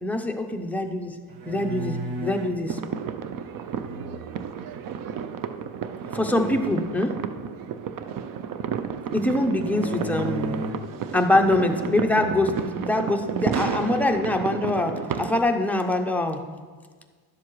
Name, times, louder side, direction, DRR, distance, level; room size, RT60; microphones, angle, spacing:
voice 1, 0.0-1.2 1.5-2.8 6.1-7.1 9.1-10.6 11.1-16.4, left 1 dB, 5° left, 3 dB, 0.5 m, -24 dB
sound 1, 1.3-2.6 3.8-4.5 6.0-6.6 9.5-10.9 11.3-11.8 12.0-12.4 13.1-13.2 13.5-14.2, right 1 dB, 90° right, 0.8 m, -35 dB
sound 2, 2.7-15.4, right 7 dB, 50° right, 0.5 m, -32 dB
11.5 x 7.2 x 3.1 m, 1.5 s
cardioid pair, 115°, 45 cm